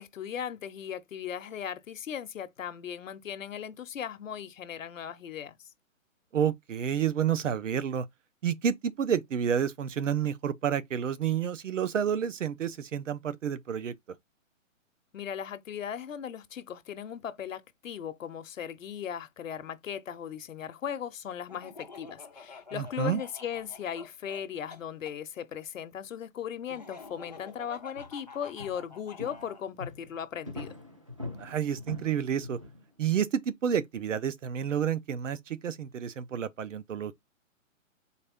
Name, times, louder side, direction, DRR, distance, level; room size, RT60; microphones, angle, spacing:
voice 1, 0.0-5.7 15.1-30.7, left 8 dB, 70° left, 0.8 m, -38 dB
voice 2, 6.3-8.1 8.4-13.9 22.7-23.2 31.4-32.6 33.0-37.1, right 8 dB, 65° right, 0.7 m, -29 dB
Laughter, 21.5-25.2 26.7-29.6, left 4 dB, 35° left, 0.4 m, -48 dB
sound 1, 27.3-27.6 27.9-33.0, left 2 dB, 25° right, 0.5 m, -44 dB
4.2 x 3.3 x 3.5 m
hypercardioid pair, 170°, 40 cm